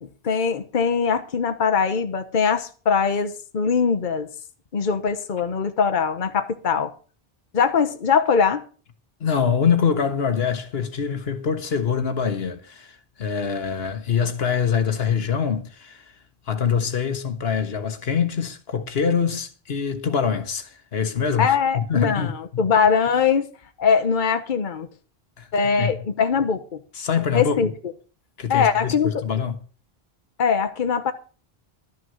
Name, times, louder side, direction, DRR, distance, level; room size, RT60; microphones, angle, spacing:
voice 1, 0.0-4.3 4.7-6.9 7.5-8.6 21.4-23.5 23.8-24.9 25.5-26.6 27.3-27.7 28.5-29.2 30.4-31.1, left 6 dB, 50° left, 1.1 m, -21 dB
voice 2, 9.2-16.1 16.5-22.6 25.4-25.5 25.8-26.0 26.9-27.6 28.4-29.6, left 6 dB, 80° left, 1.4 m, -24 dB
12.0 x 6.3 x 7.0 m
omnidirectional pair, 1.0 m